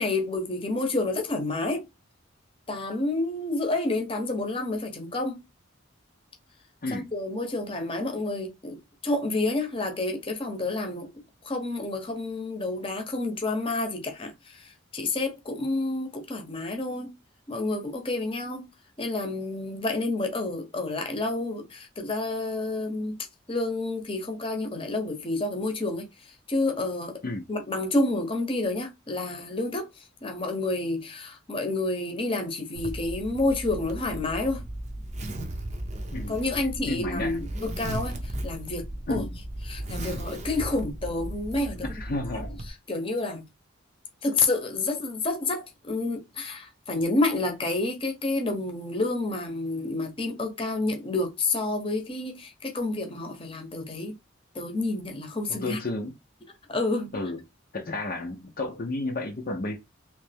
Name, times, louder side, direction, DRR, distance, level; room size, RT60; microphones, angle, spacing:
voice 1, 0.0-1.8 2.7-5.4 6.9-8.8 9.0-11.1 11.4-17.1 17.5-18.7 19.0-23.2 23.5-26.1 26.5-27.2 27.5-29.9 30.2-34.6 36.3-39.3 39.6-41.9 42.3-43.5 44.2-54.1 54.5-55.8 56.7-57.1, left 2 dB, 25° left, 0.9 m, -29 dB
Zipper (clothing), 32.8-42.7, right 1 dB, 35° right, 0.7 m, -36 dB
voice 2, 36.9-37.4 39.1-39.3 41.8-42.6 55.5-56.2 57.1-57.4 57.7-59.8, left 2 dB, 45° left, 0.6 m, -32 dB
3.3 x 3.1 x 3.4 m
head